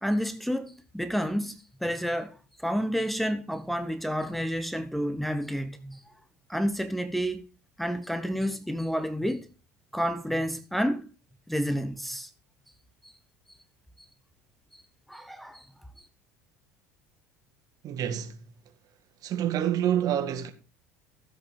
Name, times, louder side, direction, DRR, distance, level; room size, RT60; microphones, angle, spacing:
voice 1, 0.0-6.1 6.5-7.5 7.8-9.5 9.9-11.1 11.5-12.3 13.0-13.1 14.7-14.8 15.1-15.7, equal, ahead, 1.0 m, -30 dB
voice 2, 17.8-18.4 19.2-20.5, right 10 dB, 50° right, 1.9 m, -27 dB
14.5 x 7.9 x 4.1 m
hypercardioid pair, 70°, 8 cm